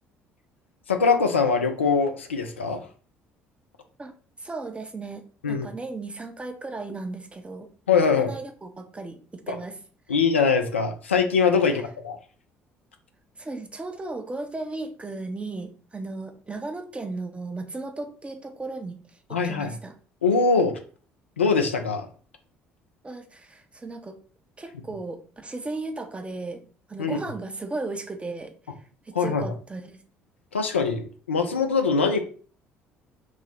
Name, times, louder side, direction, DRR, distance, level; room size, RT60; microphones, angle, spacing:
voice 1, 0.9-2.8 5.4-5.7 7.9-8.3 9.5-9.6 10.1-12.2 19.3-19.7 20.2-20.8 21.4-22.1 27.0-27.2 29.1-29.5 30.5-32.2, left 5 dB, 85° left, 5 dB, 0.3 m, -22 dB
voice 2, 4.4-7.7 8.2-9.8 11.6-11.8 13.4-19.0 19.3-20.0 23.0-24.2 24.6-26.6 26.9-28.5 29.1-30.0, right 3 dB, 20° right, 6 dB, 0.5 m, -35 dB
3.1 x 2.0 x 4.0 m, 0.41 s
figure-of-eight pair, 55°, 6 cm